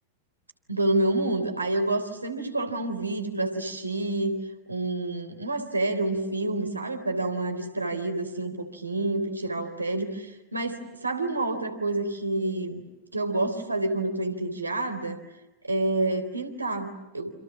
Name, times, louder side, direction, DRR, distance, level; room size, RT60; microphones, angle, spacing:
voice 1, 0.7-4.4 4.7-15.2 15.6-17.3, right 2 dB, 80° right, 6 dB, 3.6 m, -28 dB
29.0 x 28.0 x 7.3 m, 1.0 s
figure-of-eight pair, 90°, 0 cm